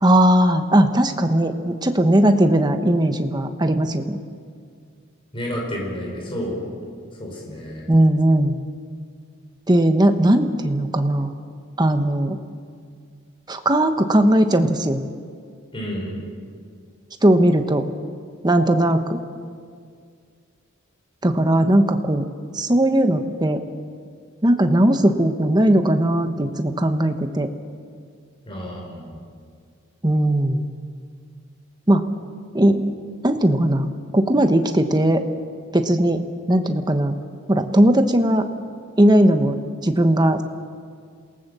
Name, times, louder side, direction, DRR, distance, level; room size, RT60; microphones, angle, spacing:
voice 1, 0.0-4.2 7.9-8.6 9.7-11.3 11.8-12.4 13.5-15.0 17.2-17.8 18.4-19.2 21.2-22.3 22.5-23.6 24.4-27.5 30.0-30.7 31.9-32.0 32.5-32.9 33.2-35.2 35.7-36.2 36.5-37.2 37.5-38.5 39.0-40.4, right 1 dB, 20° right, 7 dB, 1.2 m, -18 dB
voice 2, 5.3-6.6 7.2-7.8 15.7-16.2 28.4-29.2, equal, 25° left, -2 dB, 5.5 m, -30 dB
28.0 x 18.5 x 6.9 m, 2.1 s
head